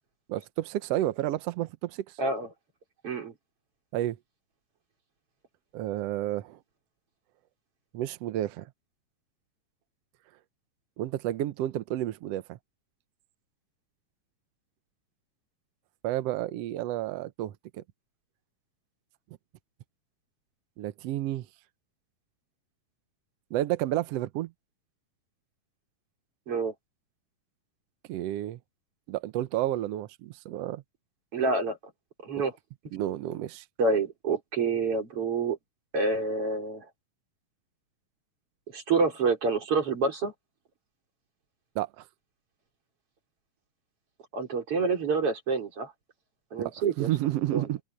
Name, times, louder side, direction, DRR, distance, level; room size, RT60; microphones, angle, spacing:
voice 1, 0.3-2.0 3.9-4.2 5.7-6.6 7.9-8.7 11.0-12.6 16.0-17.8 20.8-21.5 23.5-24.5 28.1-28.6 29.1-30.8 32.9-33.6 41.7-42.0 46.6-47.8, right 14 dB, 90° right, 1.3 m, -31 dB
voice 2, 2.2-2.5 3.0-3.3 26.5-26.7 31.3-31.8 32.2-32.5 33.8-35.6 35.9-36.8 38.7-40.3 44.3-45.9 46.5-47.1 47.5-47.6, right 4 dB, 40° right, 5.0 m, -27 dB
open air
omnidirectional pair, 3.9 m